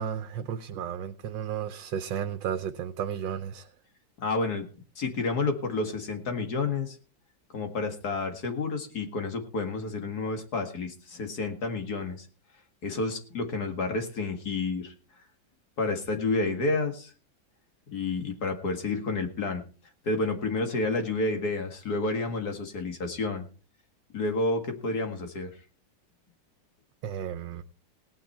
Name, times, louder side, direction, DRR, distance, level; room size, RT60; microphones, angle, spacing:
voice 1, 0.0-3.7 27.0-27.6, right 8 dB, 85° right, 1.5 m, -33 dB
voice 2, 4.2-4.6 5.0-7.0 7.5-12.3 12.8-14.9 15.8-17.1 17.9-19.6 20.0-23.5 24.1-25.5, left 3 dB, 55° left, 2.4 m, -30 dB
17.5 x 9.5 x 4.4 m
omnidirectional pair, 2.0 m